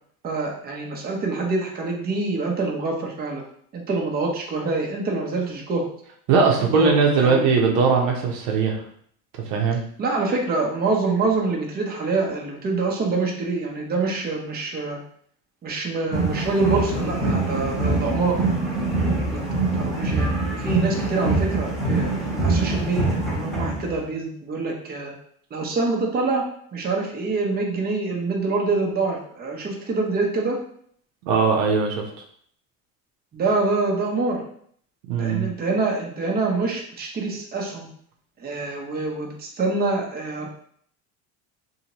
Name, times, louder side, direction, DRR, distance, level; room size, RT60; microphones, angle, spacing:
voice 1, 0.2-3.4 3.7-5.9 6.4-7.5 10.0-15.0 15.6-18.4 19.2-22.1 22.4-25.1 25.5-26.4 26.7-30.6 33.3-34.4 35.2-37.9 38.4-40.5, right 3 dB, 25° right, -1 dB, 0.7 m, -25 dB
voice 2, 6.3-8.8 9.4-9.8 31.3-32.0 35.1-35.5, right 5 dB, 75° right, 0 dB, 0.8 m, -20 dB
sound 1, 16.1-24.1, right 2 dB, ahead, 1.0 m, -24 dB
2.8 x 2.8 x 2.9 m, 0.62 s
supercardioid pair, 110°, 38 cm